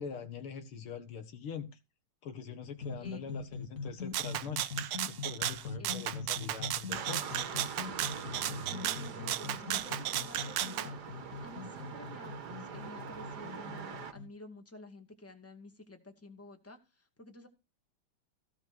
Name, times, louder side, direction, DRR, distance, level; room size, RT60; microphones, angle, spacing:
voice 1, 0.0-1.7 2.2-4.7 5.1-7.4, left 6 dB, 85° left, 2.5 m, -43 dB
sound 1, 2.7-14.3, left 4 dB, 40° left, 2.4 m, -43 dB
voice 2, 3.0-3.3 5.8-5.9 8.3-11.0 11.4-17.5, left 2 dB, 5° left, 2.0 m, -51 dB
Rattle (instrument), 4.1-10.9, right 13 dB, 80° right, 1.6 m, -35 dB
sound 2, 6.9-14.1, right 6 dB, 50° right, 1.9 m, -44 dB
16.0 x 5.5 x 6.1 m
omnidirectional pair, 2.3 m